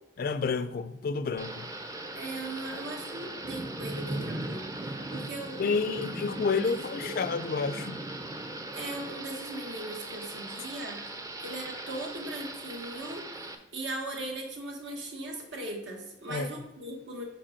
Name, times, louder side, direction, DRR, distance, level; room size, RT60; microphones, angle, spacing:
voice 1, 0.2-1.7 5.6-8.0 16.3-16.5, left 5 dB, 50° left, 0.4 m, -30 dB
Thunder / Rain, 1.4-13.6, right 2 dB, 20° right, 0.5 m, -39 dB
voice 2, 2.1-6.1 6.4-7.3 8.7-11.0 11.4-17.2, right 1 dB, 85° right, 1.4 m, -39 dB
5.0 x 4.5 x 5.7 m
head